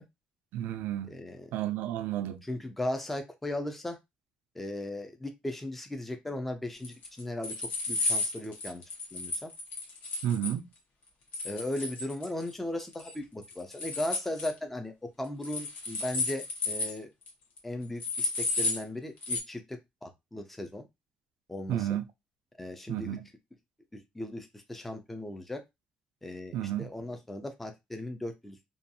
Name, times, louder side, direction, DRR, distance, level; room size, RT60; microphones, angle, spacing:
voice 1, 0.5-1.1 1.5-2.4 10.2-10.7 21.7-22.0 22.9-23.3 26.5-26.9, right 11 dB, 85° right, 0.3 m, -31 dB
voice 2, 1.1-1.5 2.5-4.0 4.6-7.5 7.9-8.8 9.1-9.5 11.4-17.1 17.6-20.9 21.5-22.0 22.6-23.2 23.9-25.6 26.2-28.6, left 1 dB, 5° left, 0.3 m, -37 dB
sound 1, 6.8-10.5 11.3-12.5 12.8-13.1 13.4-14.5 15.4-17.0 17.3-17.4 17.6-17.7 18.0-18.8 19.2-19.4, left 2 dB, 55° left, 0.9 m, -33 dB
2.5 x 2.2 x 2.6 m
cardioid pair, 175°, 3 cm